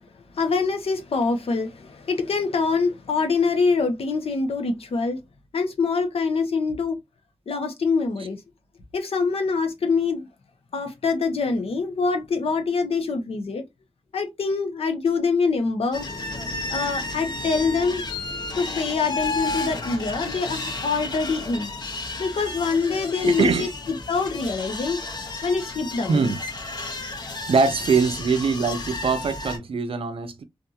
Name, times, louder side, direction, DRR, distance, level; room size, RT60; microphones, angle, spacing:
voice 1, 0.3-5.2 5.5-7.0 7.5-8.4 8.9-10.3 10.7-13.6 14.1-16.1 16.7-18.0 18.6-21.7 22.2-23.7 24.1-25.0 25.4-26.2, left 4 dB, 80° left, 0.8 m, -24 dB
sound 1, 15.9-29.6, left 2 dB, 45° left, 0.7 m, -32 dB
voice 2, 23.2-23.7 26.1-26.4 27.5-30.4, right 5 dB, 70° right, 0.5 m, -22 dB
2.7 x 2.5 x 2.4 m
wide cardioid pair, 90°, 10 cm